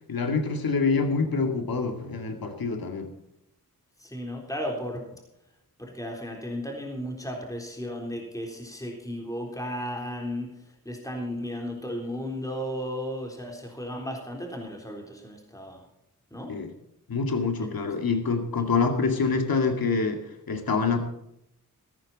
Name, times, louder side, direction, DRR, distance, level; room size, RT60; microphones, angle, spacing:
voice 1, 0.1-3.1 16.5-16.7 17.1-20.2 20.5-21.1, left 4 dB, 70° left, 5 dB, 2.4 m, -26 dB
voice 2, 4.0-5.0 5.8-10.6 10.9-15.8 16.3-16.5, equal, 10° left, 0 dB, 3.8 m, -34 dB
15.0 x 14.0 x 4.2 m, 0.81 s
wide cardioid pair, 85°, 37 cm